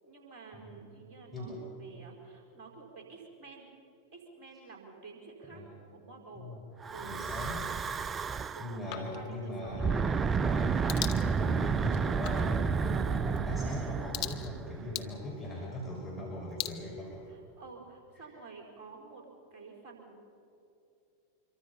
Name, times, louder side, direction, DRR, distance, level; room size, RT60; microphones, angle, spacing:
voice 1, 0.0-3.7 4.1-5.6 5.9-6.5 6.9-7.1 8.5-9.9 17.3-19.3 19.5-20.2, right 4 dB, 40° right, 1 dB, 5.2 m, -50 dB
Breathing / Wind, 6.8-8.8 9.7-15.1, right 5 dB, 20° right, 0.4 m, -31 dB
voice 2, 7.0-7.7 8.6-17.2 18.2-18.3, equal, ahead, -6 dB, 5.6 m, -40 dB
sound 1, 8.9-17.7, left 13 dB, 45° left, 1.1 m, -44 dB
26.5 x 23.5 x 5.7 m, 2.7 s
figure-of-eight pair, 90°, 0 cm